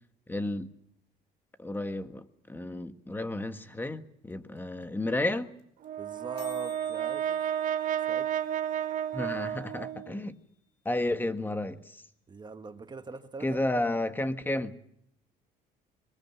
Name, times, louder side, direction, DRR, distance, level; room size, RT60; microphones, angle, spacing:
voice 1, 0.3-0.7 1.6-5.5 9.1-10.4 10.8-12.0 13.4-14.8, left 1 dB, 10° left, 1.5 m, -32 dB
sound 1, 4.3-4.4 4.6-4.7 4.8-5.1 5.3-5.4 5.6-5.8 6.1-6.2 6.4-10.3, left 10 dB, 85° left, 4.5 m, -55 dB
Brass instrument, 5.8-10.3, right 10 dB, 50° right, 1.0 m, -32 dB
voice 2, 6.0-7.4 8.1-8.3 12.3-13.6, right 4 dB, 25° right, 1.6 m, -42 dB
22.5 x 20.5 x 8.3 m
cardioid pair, 110°, 17 cm